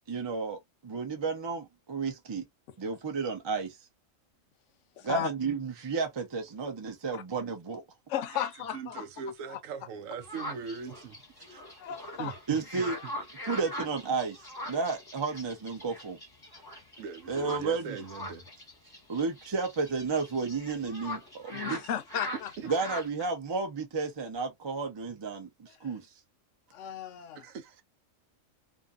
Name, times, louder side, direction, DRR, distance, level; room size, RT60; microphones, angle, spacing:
voice 1, 0.1-2.4 2.8-3.8 5.0-7.8 11.5-11.6 12.5-13.0 13.5-16.2 17.3-18.0 19.1-21.8 22.6-26.1, right 4 dB, 30° right, 0.5 m, -32 dB
voice 2, 5.0-5.3 8.1-9.0 9.5-9.6 11.8-12.3 21.5-22.5 26.7-27.4, left 10 dB, 70° left, 0.9 m, -35 dB
voice 3, 8.7-11.2 12.2-13.1 13.5-13.6 17.0-18.5 22.6-22.7 27.4-27.8, right 6 dB, 80° right, 1.0 m, -41 dB
sound 1, 10.2-23.1, left 1 dB, 20° left, 1.1 m, -42 dB
2.6 x 2.5 x 2.3 m
omnidirectional pair, 1.4 m